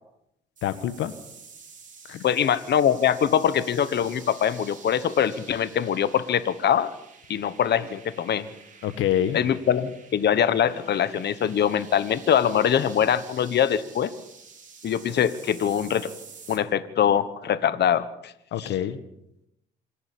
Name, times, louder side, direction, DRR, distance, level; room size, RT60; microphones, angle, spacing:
voice 1, 0.6-1.1 2.1-2.2 8.8-9.4 18.5-19.0, left 11 dB, 90° left, 13 dB, 1.4 m, -26 dB
sound 1, 0.6-16.6, right 5 dB, 40° right, 4.9 m, -49 dB
voice 2, 2.2-6.9 7.3-8.5 9.3-14.1 14.8-16.1 16.5-18.3 18.6-18.7, left 9 dB, 60° left, 14 dB, 1.2 m, -23 dB
26.5 x 11.5 x 8.5 m, 0.80 s
cardioid pair, 90°, 20 cm